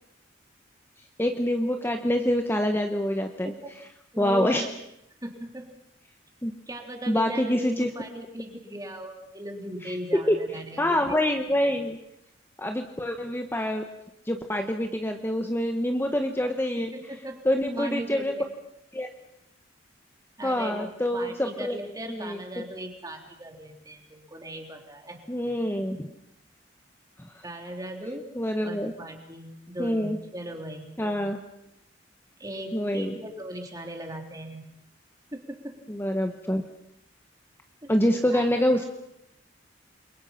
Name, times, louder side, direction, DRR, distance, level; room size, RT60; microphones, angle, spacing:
voice 1, 1.2-3.5 4.2-4.6 6.4-6.5 7.1-7.9 10.3-10.4 10.8-12.0 12.6-13.8 14.3-16.9 17.4-18.3 18.9-19.1 20.4-21.8 22.1-22.4 25.3-26.0 27.2-27.3 28.4-28.9 29.8-30.2 31.0-31.4 32.7-33.1 35.9-36.6 37.9-38.8, left 1 dB, 10° left, 5 dB, 1.3 m, -26 dB
voice 2, 4.1-4.7 5.2-5.7 6.7-11.3 16.7-17.5 17.7-18.5 20.4-25.2 27.4-28.3 28.6-31.0 32.4-34.6 35.3-35.8 37.8-38.9, right 1 dB, 20° right, 3 dB, 3.5 m, -38 dB
29.0 x 22.5 x 5.9 m, 0.78 s
head